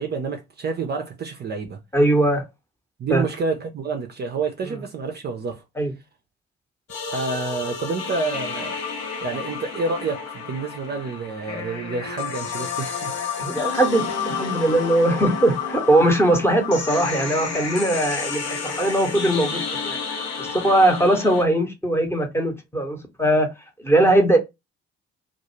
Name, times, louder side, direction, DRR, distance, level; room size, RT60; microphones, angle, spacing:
voice 1, 0.0-1.8 3.0-5.6 7.1-8.8 9.2-13.2, right 4 dB, 35° right, 0.5 m, -28 dB
voice 2, 1.9-2.4 3.1-3.3 5.8-5.9 13.4-20.0 20.4-23.5 23.8-24.4, right 1 dB, 10° left, 0.8 m, -20 dB
sound 1, 6.9-21.4, left 6 dB, 55° left, 0.7 m, -30 dB
2.3 x 2.1 x 3.0 m
figure-of-eight pair, 45°, 31 cm